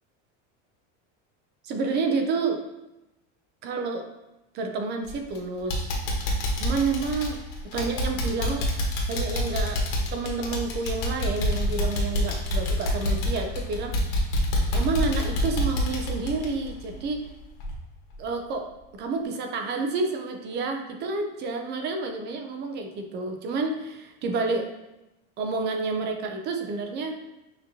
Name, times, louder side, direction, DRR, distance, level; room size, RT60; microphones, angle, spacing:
voice 1, 1.6-2.6 3.6-4.0 4.5-5.9 6.6-7.4 7.7-8.7 9.1-9.9 10.1-14.3 14.7-17.2 18.2-18.7 18.9-24.7 25.4-27.2, right 4 dB, 30° right, 4 dB, 0.4 m, -29 dB
sound 1, 5.0-5.4 5.7-17.3 17.6-17.7 18.2-18.3, left 1 dB, 65° left, 1.4 m, -27 dB
6.8 x 2.9 x 2.7 m, 0.96 s
supercardioid pair, 155°, 37 cm